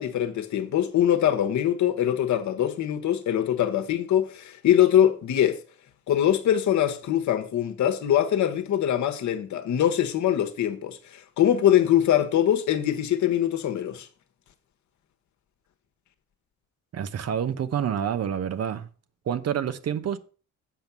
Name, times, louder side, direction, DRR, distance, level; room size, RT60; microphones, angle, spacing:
voice 1, 0.0-5.6 6.1-14.1, left 10 dB, 70° left, 1.2 m, -23 dB
voice 2, 16.9-18.9 19.3-20.2, right 8 dB, 55° right, 0.9 m, -28 dB
7.9 x 5.3 x 5.9 m
cardioid pair, 90°, 30 cm